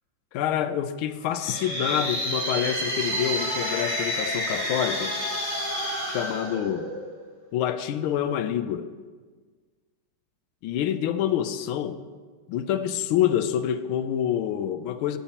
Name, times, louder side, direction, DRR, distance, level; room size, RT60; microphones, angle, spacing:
voice 1, 0.3-5.1 6.1-6.9 7.5-8.9 10.6-12.0 12.5-15.2, left 10 dB, 80° left, 1.4 m, -27 dB
sound 1, 1.3-7.2, equal, 30° right, 3.8 m, -29 dB
13.5 x 8.2 x 2.9 m
omnidirectional pair, 2.3 m